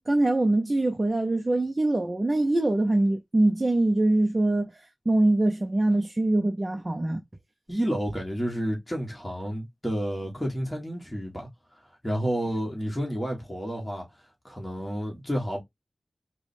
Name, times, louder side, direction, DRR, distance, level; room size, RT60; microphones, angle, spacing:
voice 1, 0.0-4.7 5.1-7.2, right 2 dB, 30° right, 0.5 m, -23 dB
voice 2, 7.7-11.5 11.8-14.1 14.4-15.6, equal, 10° left, 1.2 m, -30 dB
4.8 x 2.1 x 2.6 m
wide cardioid pair, 90°, 0 cm